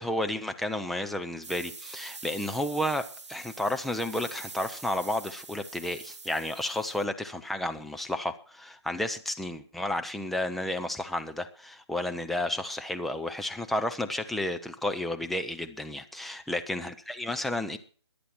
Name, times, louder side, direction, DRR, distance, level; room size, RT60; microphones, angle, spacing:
voice 1, 0.0-17.8, left 1 dB, ahead, 6 dB, 0.6 m, -32 dB
sound 1, 1.4-7.0, right 4 dB, 85° right, 1.1 m, -45 dB
22.0 x 8.5 x 4.5 m, 0.42 s
hypercardioid pair, 155°, 15 cm